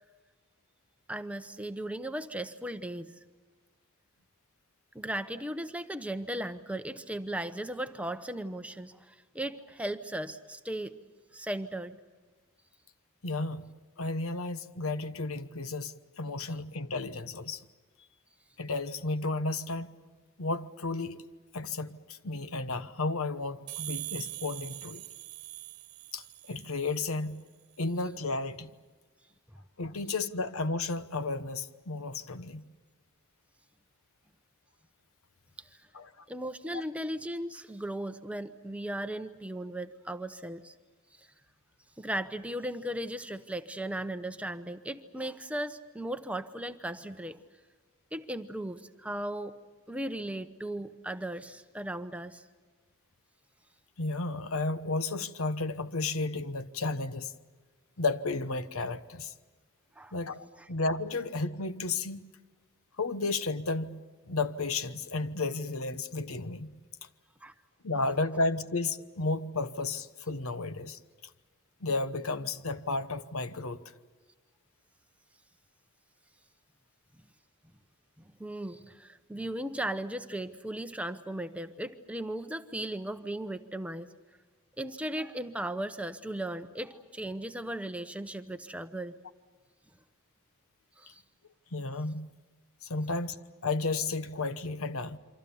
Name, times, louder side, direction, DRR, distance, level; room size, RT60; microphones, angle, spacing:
voice 1, 1.1-3.2 4.9-10.9 11.3-12.0 35.6-35.8 36.3-40.7 41.2-41.3 42.0-47.4 48.1-49.6 49.9-52.4 60.0-60.1 67.4-67.5 78.4-84.1 84.8-89.1 91.0-91.2, right 1 dB, 5° right, 0.8 m, -37 dB
voice 2, 13.2-13.7 14.0-17.6 18.6-19.9 20.4-21.2 21.5-25.0 26.1-27.4 27.8-28.7 29.8-32.6 35.9-36.2 36.7-36.8 54.0-57.3 58.0-59.3 60.1-62.3 63.0-66.7 67.8-71.0 71.8-73.8 91.7-92.3 92.8-95.2, left 3 dB, 75° left, 1.1 m, -33 dB
sound 1, 23.7-27.3, right 16 dB, 75° right, 1.2 m, -42 dB
28.0 x 25.0 x 7.0 m
head